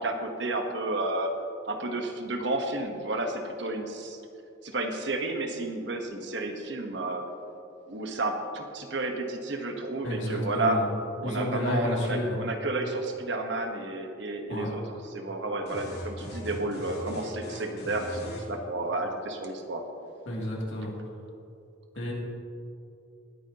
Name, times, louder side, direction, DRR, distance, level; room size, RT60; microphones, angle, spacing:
voice 1, 0.0-1.3 1.7-4.2 4.6-7.2 7.9-10.8 11.2-14.8 15.1-19.8, right 2 dB, 70° right, 4 dB, 1.2 m, -31 dB
voice 2, 10.0-10.9 11.2-12.4 14.5-14.7 20.3-20.9 21.9-22.1, left 1 dB, 75° left, -4 dB, 2.7 m, -31 dB
sound 1, 15.7-18.5, left 1 dB, 60° left, 3.1 m, -39 dB
19.5 x 9.3 x 2.9 m, 2.6 s
head